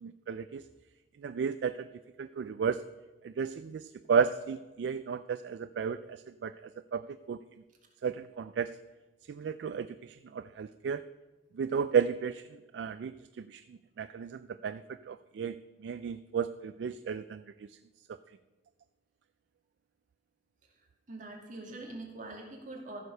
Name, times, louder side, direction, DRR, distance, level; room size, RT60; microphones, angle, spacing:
voice 1, 0.0-0.6 1.2-1.9 2.2-2.8 3.2-6.5 6.9-7.0 7.3-7.4 8.0-8.7 9.3-11.0 11.5-12.5 12.7-15.6 15.8-17.4, right 6 dB, 70° right, 11 dB, 0.3 m, -33 dB
voice 2, 21.1-23.0, right 2 dB, 45° right, 0 dB, 2.2 m, -43 dB
14.5 x 6.7 x 5.3 m, 1.2 s
head